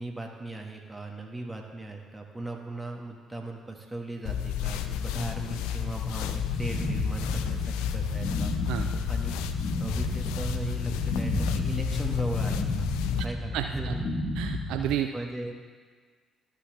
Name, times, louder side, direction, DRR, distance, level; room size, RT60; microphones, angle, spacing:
voice 1, 0.0-9.4 9.8-12.9 13.2-14.1 15.1-15.5, right 2 dB, 15° right, 1 dB, 1.7 m, -38 dB
sound 1, 4.3-13.3, left 9 dB, 75° left, 0.4 m, -31 dB
sound 2, 6.3-14.8, left 1 dB, 55° left, 2.9 m, -32 dB
voice 2, 13.5-13.9 14.4-15.1, right 11 dB, 70° right, 6 dB, 0.4 m, -31 dB
13.0 x 5.9 x 3.4 m, 1.5 s
hypercardioid pair, 50°, 0 cm